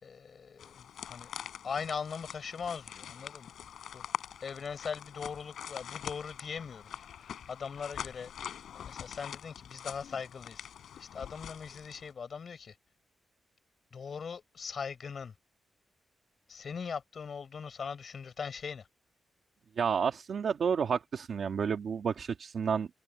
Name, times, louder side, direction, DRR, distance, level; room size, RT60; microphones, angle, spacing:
voice 1, 0.0-1.3 1.6-3.5 3.9-4.0 4.4-8.3 8.7-10.7 11.0-12.8 13.9-15.3 16.5-18.9, left 6 dB, 45° left, 5.5 m, -40 dB
sound 1, 0.6-12.1, left 9 dB, 80° left, 5.8 m, -44 dB
voice 2, 19.8-22.9, right 6 dB, 50° right, 1.9 m, -30 dB
wide cardioid pair, 180°, 0 cm